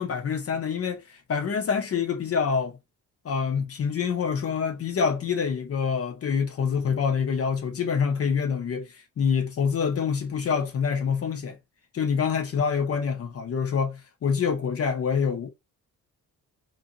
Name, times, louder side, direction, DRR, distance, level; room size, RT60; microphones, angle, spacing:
voice 1, 0.0-2.8 3.2-11.6 11.9-15.5, left 6 dB, 40° left, 0.5 m, -26 dB
2.6 x 2.2 x 2.6 m
cardioid pair, 115°, 36 cm